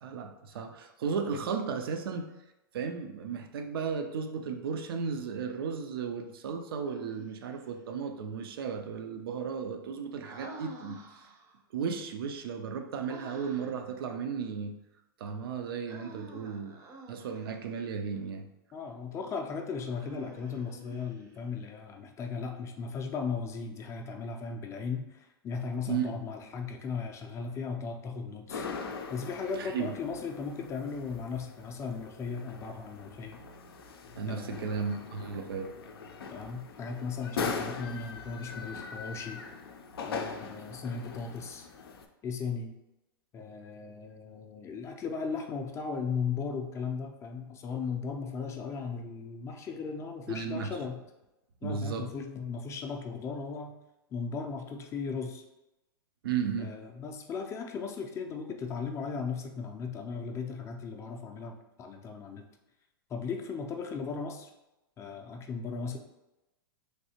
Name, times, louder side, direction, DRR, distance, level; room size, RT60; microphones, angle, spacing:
voice 1, 0.0-2.3 2.7-11.3 11.7-14.7 15.2-16.8 17.1-18.5 25.9-26.2 29.5-29.9 34.2-35.7 50.3-50.7 51.6-52.1 56.2-56.7, right 6 dB, 75° right, 6 dB, 0.4 m, -35 dB
Human voice, 6.9-7.8 10.2-11.6 13.1-13.9 15.9-17.7 19.9-21.5, right 2 dB, 25° right, 0.5 m, -49 dB
voice 2, 18.7-28.7 29.1-33.4 34.3-35.0 36.3-39.5 40.0-41.7 42.2-42.8 43.3-51.0 51.6-53.7 54.1-55.4 56.6-62.4 63.1-64.5 65.0-66.0, left 5 dB, 25° left, 3 dB, 0.4 m, -37 dB
sound 1, 28.5-42.1, left 5 dB, 85° left, 0.4 m, -41 dB
3.2 x 2.7 x 2.8 m, 0.98 s
hypercardioid pair, 115°, 12 cm